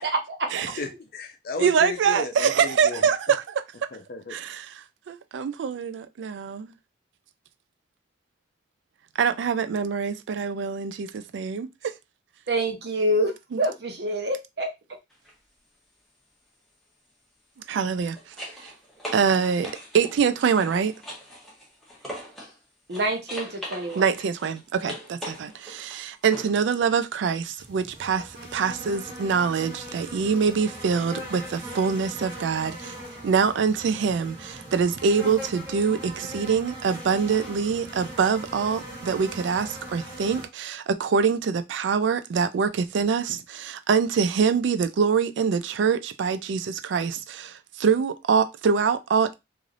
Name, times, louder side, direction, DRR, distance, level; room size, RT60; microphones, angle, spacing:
voice 1, 0.0-0.5 12.5-13.3 13.6-14.7 22.9-24.1, right 1 dB, 60° right, 0.8 m, -26 dB
voice 2, 0.8-3.1 3.9-4.4, left 3 dB, 50° left, 0.5 m, -34 dB
voice 3, 1.6-3.4 4.3-4.7 5.1-6.7 9.2-11.9 17.7-18.2 19.1-20.9 24.0-32.9 33.2-49.3, right 6 dB, 75° right, 0.3 m, -24 dB
sound 1, 15.1-15.3 17.6-22.6 22.9-26.6 29.3-29.4, equal, ahead, 0.8 m, -41 dB
sound 2, 27.6-40.5, equal, 20° right, 1.3 m, -40 dB
3.2 x 2.6 x 2.5 m
head